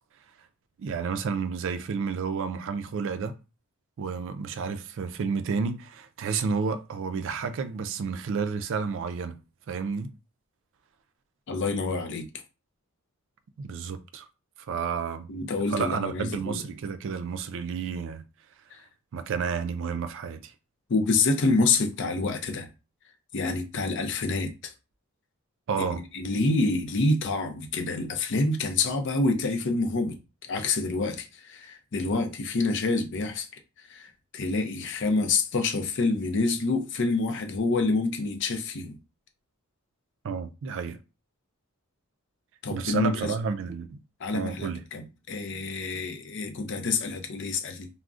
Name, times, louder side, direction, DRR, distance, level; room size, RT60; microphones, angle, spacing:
voice 1, 0.8-3.3 4.0-9.4 9.7-10.1 13.6-14.2 14.7-15.3 15.7-18.2 19.1-20.5 25.7-26.0 40.2-41.0 42.7-44.0 44.3-44.8, right 5 dB, 60° right, 0.3 m, -30 dB
voice 2, 11.5-12.3 15.3-16.6 18.7-18.8 20.9-22.7 23.3-24.7 25.9-33.5 33.8-39.0 42.6-43.3 44.2-47.9, left 3 dB, 55° left, 0.5 m, -27 dB
3.6 x 2.0 x 2.4 m
head